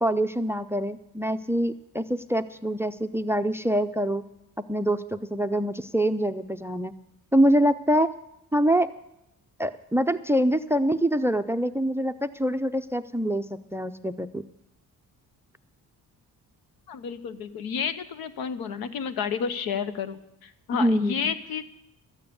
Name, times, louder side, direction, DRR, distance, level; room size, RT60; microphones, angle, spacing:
voice 1, 0.0-4.2 4.7-6.9 7.3-8.1 8.5-8.9 9.6-13.4 13.7-14.4 20.8-21.3, right 1 dB, 5° right, 14 dB, 0.4 m, -25 dB
voice 2, 16.9-21.6, left 7 dB, 85° left, 12 dB, 1.0 m, -31 dB
13.5 x 9.3 x 6.9 m, 0.85 s
cardioid pair, 100°, 35 cm